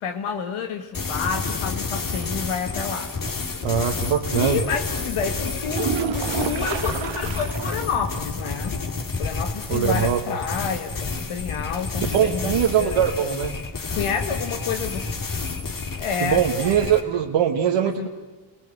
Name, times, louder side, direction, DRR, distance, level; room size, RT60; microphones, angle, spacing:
voice 1, 0.0-3.1 4.3-8.8 9.2-12.5 12.8-13.5 13.9-15.0 16.0-16.8 17.8-18.1, left 6 dB, 85° left, 5 dB, 1.8 m, -29 dB
sound 1, 0.9-17.0, left 4 dB, 45° left, 2.8 m, -29 dB
voice 2, 3.6-4.6 9.7-10.2 12.0-13.5 16.2-18.1, right 9 dB, 85° right, 1 dB, 1.5 m, -22 dB
sound 2, 5.6-7.9 8.2-8.3 8.8-8.9 12.7-12.8, right 10 dB, 65° right, 1.0 m, -29 dB
28.5 x 19.0 x 8.3 m, 1.3 s
cardioid pair, 80°, 48 cm